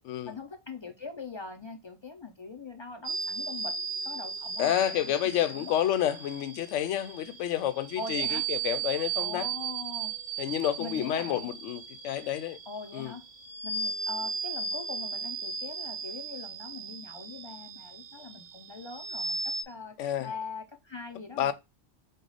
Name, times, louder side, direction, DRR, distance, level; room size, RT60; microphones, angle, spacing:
voice 1, 0.2-3.8 4.0-5.8 8.0-8.4 9.2-10.1 10.8-11.5 12.7-13.2 13.6-21.5, left 4 dB, 45° left, 0.3 m, -42 dB
sound 1, 3.0-19.6, right 5 dB, 60° right, 0.9 m, -36 dB
voice 2, 4.6-9.5 10.4-12.6 12.9-13.1 20.0-20.3 21.4-21.5, left 11 dB, 85° left, 0.9 m, -29 dB
4.8 x 2.4 x 3.9 m
omnidirectional pair, 1.2 m